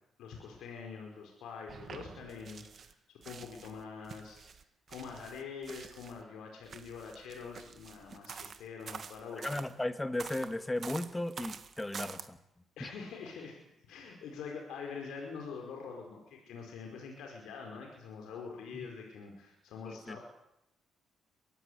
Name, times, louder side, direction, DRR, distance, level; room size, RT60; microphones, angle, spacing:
voice 1, 0.2-2.9 3.2-4.4 4.9-9.6 12.8-13.6 13.9-20.2, left 5 dB, 85° left, 1 dB, 5.0 m, -45 dB
sound 1, 1.7-2.9 3.2-6.2 6.6-9.7 10.2-12.2, right 6 dB, 50° right, 1.9 m, -47 dB
voice 2, 9.4-12.4 12.8-12.9 18.7-18.9 19.9-20.2, left 1 dB, 15° left, 10 dB, 1.8 m, -36 dB
23.0 x 16.0 x 9.5 m, 0.86 s
cardioid pair, 90°, 0 cm